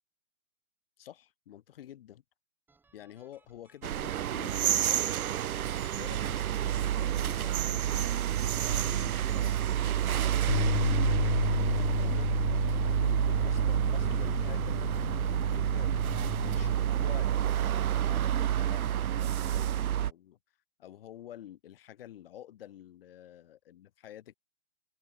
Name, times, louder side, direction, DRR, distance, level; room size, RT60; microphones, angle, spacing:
voice 1, 1.0-2.2 2.9-7.9 8.6-12.3 12.8-16.0 16.5-20.4 20.8-24.3, left 11 dB, 40° left, 2.2 m, -49 dB
sound 1, 2.7-7.7, right 4 dB, 5° right, 3.2 m, -67 dB
sound 2, 3.8-20.1, right 11 dB, 80° right, 0.8 m, -29 dB
Bass guitar, 10.5-16.7, left 8 dB, 85° left, 1.4 m, -33 dB
open air
hypercardioid pair, 165°, 42 cm